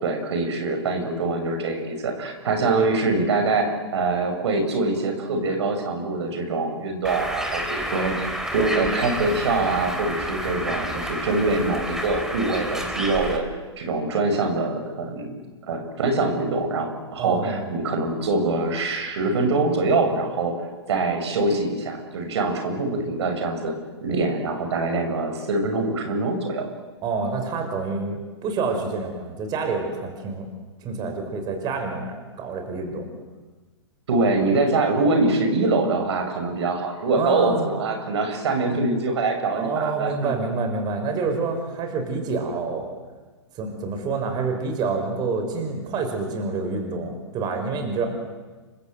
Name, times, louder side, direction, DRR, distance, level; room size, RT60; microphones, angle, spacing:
voice 1, 0.0-8.1 8.5-13.4 13.8-15.3 15.7-20.5 20.9-23.7 24.0-26.7 34.1-40.3, right 3 dB, 70° right, 5 dB, 6.7 m, -24 dB
Bird, 7.0-13.4, equal, 5° right, 3.7 m, -30 dB
voice 2, 17.2-17.7 27.0-30.5 30.8-33.1 37.1-37.7 39.5-42.9 43.5-48.1, right 4 dB, 30° right, 5 dB, 6.0 m, -27 dB
29.0 x 25.0 x 8.1 m, 1.3 s
hypercardioid pair, 130°, 15 cm